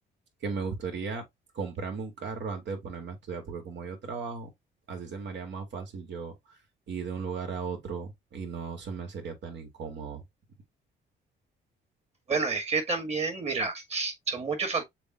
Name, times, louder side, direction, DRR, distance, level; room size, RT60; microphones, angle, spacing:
voice 1, 0.4-1.2 1.5-4.5 4.9-6.6 6.9-10.2, right 5 dB, 65° right, 1.9 m, -36 dB
voice 2, 12.3-14.8, right 4 dB, 30° right, 1.9 m, -29 dB
6.8 x 2.3 x 2.8 m
cardioid pair, 90°, 20 cm